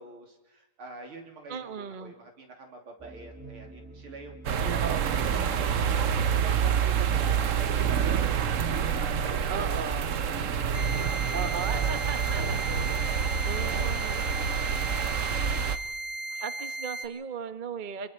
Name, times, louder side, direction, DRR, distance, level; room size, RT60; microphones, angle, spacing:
voice 1, 0.0-9.7 10.7-13.8, right 2 dB, 80° right, 2 dB, 3.9 m, -46 dB
voice 2, 1.5-2.1 4.6-5.1 9.5-10.1 11.3-12.6 13.4-14.3 16.3-18.1, right 6 dB, 30° right, 9 dB, 1.0 m, -36 dB
sound 1, 3.0-9.7, right 2 dB, 5° right, 1.6 m, -47 dB
sound 2, 4.4-15.8, right 7 dB, 60° right, 0.9 m, -27 dB
sound 3, 10.7-17.1, right 2 dB, 85° left, 3.4 m, -36 dB
28.5 x 22.5 x 4.5 m, 0.97 s
omnidirectional pair, 2.3 m